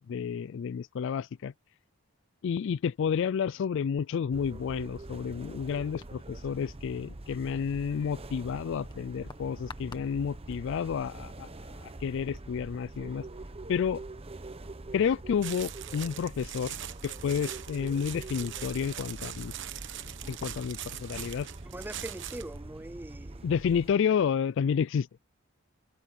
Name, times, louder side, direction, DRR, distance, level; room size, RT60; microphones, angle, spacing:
voice 1, 0.1-1.5 2.4-11.5 11.8-13.3 13.7-14.0 14.9-16.8 17.0-19.5 20.0-21.5 23.4-25.3, left 7 dB, 65° left, 0.3 m, -30 dB
sound 1, 4.3-23.9, right 2 dB, 30° right, 0.9 m, -44 dB
sound 2, 5.9-12.5, left 3 dB, 25° left, 1.5 m, -54 dB
sound 3, 15.4-22.6, right 11 dB, 65° right, 1.0 m, -42 dB
voice 2, 21.6-23.5, right 1 dB, 10° right, 0.5 m, -42 dB
head